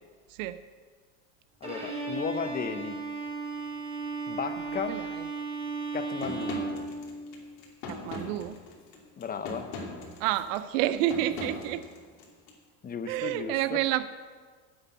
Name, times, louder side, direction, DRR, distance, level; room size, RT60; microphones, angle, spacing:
voice 1, 1.6-3.1 4.3-5.0 5.9-6.6 9.2-9.7 12.8-13.8, left 6 dB, 25° left, 11 dB, 0.8 m, -35 dB
Bowed string instrument, 1.6-7.5, right 3 dB, 15° right, 4.2 m, -35 dB
voice 2, 4.7-5.3 7.9-8.6 10.2-11.8 13.1-14.1, right 13 dB, 85° right, 13 dB, 0.6 m, -29 dB
sound 1, 6.2-12.5, left 3 dB, 70° left, 2.9 m, -40 dB
10.0 x 7.9 x 8.2 m, 1.6 s
supercardioid pair, 125°, 38 cm